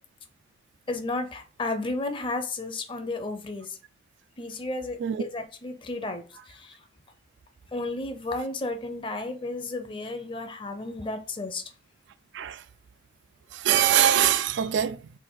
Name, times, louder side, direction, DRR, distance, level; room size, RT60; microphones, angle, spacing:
voice 1, 0.9-3.8 4.4-5.0 5.3-6.7 7.7-11.6, left 2 dB, 25° left, 0.5 m, -33 dB
voice 2, 13.5-15.1, right 10 dB, 70° right, 0.3 m, -23 dB
4.0 x 2.6 x 3.8 m
head